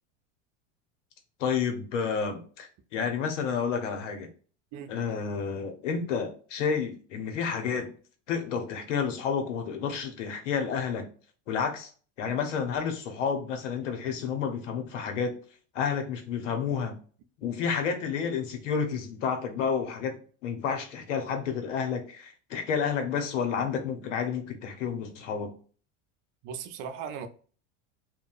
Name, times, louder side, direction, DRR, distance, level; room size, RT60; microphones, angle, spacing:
voice 1, 1.4-4.3 4.9-7.9 8.3-11.1 11.5-11.9 12.2-15.4 15.7-17.0 17.4-25.5, left 6 dB, 85° left, 0.8 m, -30 dB
voice 2, 26.4-27.3, right 7 dB, 55° right, 0.6 m, -38 dB
2.6 x 2.1 x 2.5 m
hypercardioid pair, 95°, 36 cm